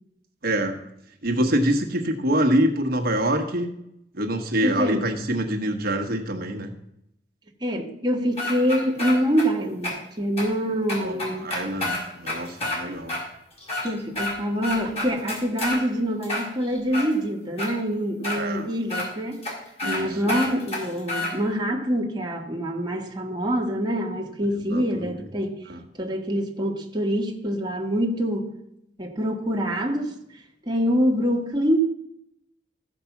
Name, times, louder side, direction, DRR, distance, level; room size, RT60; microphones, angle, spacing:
voice 1, 0.4-0.8 1.2-3.7 4.2-6.7 11.0-11.1 11.4-13.2 18.3-18.7 19.8-20.3 24.7-25.2 25.7-25.8, right 1 dB, 60° right, 1.3 m, -25 dB
voice 2, 4.6-5.1 7.6-11.5 13.8-19.4 19.8-25.6 26.0-28.5 29.0-30.2 30.6-31.9, equal, 25° right, 1.4 m, -25 dB
sound 1, 8.4-9.5 9.8-9.9 10.4-10.5 10.9-12.8 13.1-13.2 13.6-14.3 14.6-15.8 16.2-17.1 17.6-17.7 18.2-18.4 18.9-19.1 19.4-19.5 19.8-20.0 20.3-21.3, left 2 dB, 35° left, 4.3 m, -28 dB
14.0 x 5.2 x 7.1 m
head